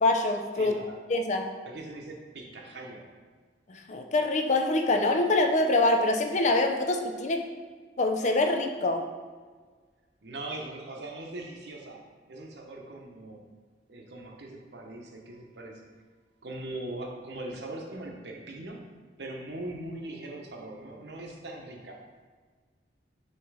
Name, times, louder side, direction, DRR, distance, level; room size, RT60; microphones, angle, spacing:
voice 1, 0.0-0.7 1.1-1.5 3.7-7.4 8.0-9.0, left 2 dB, 40° left, 5 dB, 0.4 m, -25 dB
voice 2, 0.6-0.9 1.7-3.1 10.2-12.0 12.3-13.4 13.9-15.8 16.4-18.8 19.2-22.0, right 2 dB, 70° right, 1 dB, 0.9 m, -40 dB
6.4 x 3.1 x 4.8 m, 1.5 s
head